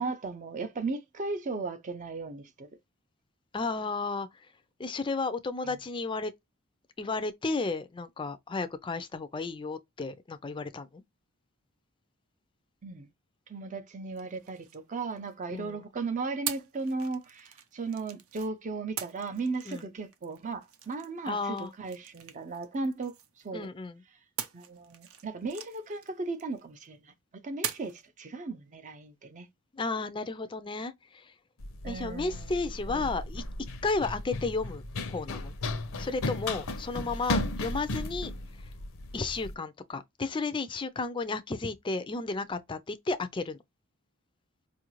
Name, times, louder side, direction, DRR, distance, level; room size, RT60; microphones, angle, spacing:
voice 1, 0.0-2.7 5.6-5.8 12.8-13.1 13.5-23.7 24.5-29.5 31.8-32.6 32.9-33.2, right 3 dB, 35° right, 0.5 m, -36 dB
voice 2, 3.5-4.3 4.8-6.3 7.0-11.0 15.5-15.8 19.7-19.8 21.3-21.7 23.5-24.0 29.7-31.2 31.9-33.4 33.8-34.8 35.1-35.5 36.0-38.3 39.1-43.6, left 3 dB, 25° left, 0.4 m, -33 dB
sound 1, 14.1-15.6 16.5-18.5 19.0-23.6 24.4-26.9 27.6-28.1, right 9 dB, 85° right, 0.6 m, -42 dB
Run, 31.6-39.5, left 2 dB, 70° left, 0.6 m, -35 dB
4.7 x 2.5 x 3.0 m
head